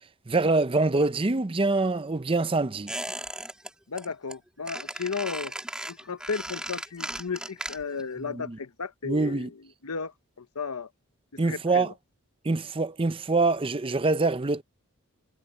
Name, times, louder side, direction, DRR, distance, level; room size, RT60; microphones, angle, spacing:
voice 1, 0.3-2.9 8.3-8.6 9.0-9.5 11.4-11.9 12.4-14.6, right 3 dB, 25° right, 0.5 m, -25 dB
Squeak, 2.9-3.7 4.0-4.3 4.7-8.1 8.3-8.4, right 1 dB, 5° right, 2.5 m, -36 dB
voice 2, 3.9-5.5 5.9-10.9 11.3-11.9, left 5 dB, 90° left, 1.0 m, -34 dB
head